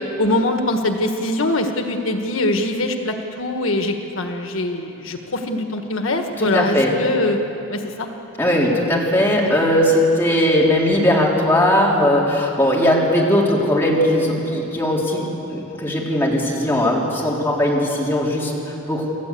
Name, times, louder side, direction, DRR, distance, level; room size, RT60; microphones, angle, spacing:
voice 1, 0.2-7.4 7.7-8.1 9.4-9.5, left 2 dB, 85° left, 5 dB, 1.5 m, -22 dB
voice 2, 6.4-7.0 8.4-18.5 18.9-19.1, left 1 dB, 10° left, -4 dB, 3.6 m, -18 dB
28.0 x 14.0 x 8.4 m, 3.0 s
head